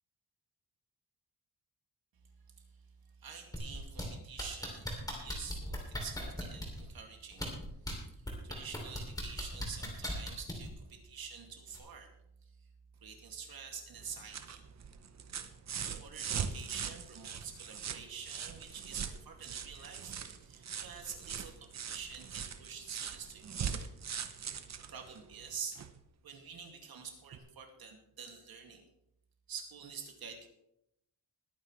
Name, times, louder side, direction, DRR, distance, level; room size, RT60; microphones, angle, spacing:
voice 1, 3.2-7.5 7.8-12.1 13.0-14.6 16.0-23.8 24.9-25.8 26.2-28.8 29.5-30.5, right 6 dB, 70° right, 3 dB, 2.4 m, -47 dB
sound 1, 3.5-4.0 4.4-6.8 7.3-7.9 8.3-10.7 11.7-11.8, left 1 dB, 10° left, 2.9 m, -38 dB
sound 2, 14.0-26.0 27.3-27.4, right 7 dB, 45° right, 0.9 m, -41 dB
21.0 x 9.5 x 3.3 m, 0.80 s
wide cardioid pair, 175°, 38 cm